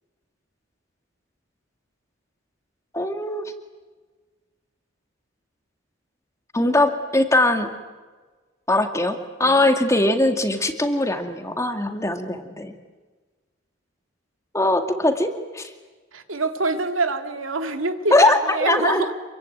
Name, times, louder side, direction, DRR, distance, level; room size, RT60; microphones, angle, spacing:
voice 1, 2.9-3.4 6.5-7.7 8.7-12.7 14.5-15.7 18.1-19.1, left 2 dB, 15° left, 6 dB, 2.0 m, -21 dB
voice 2, 16.1-19.1, right 2 dB, 85° right, 7 dB, 2.4 m, -25 dB
27.0 x 23.5 x 9.3 m, 1.3 s
head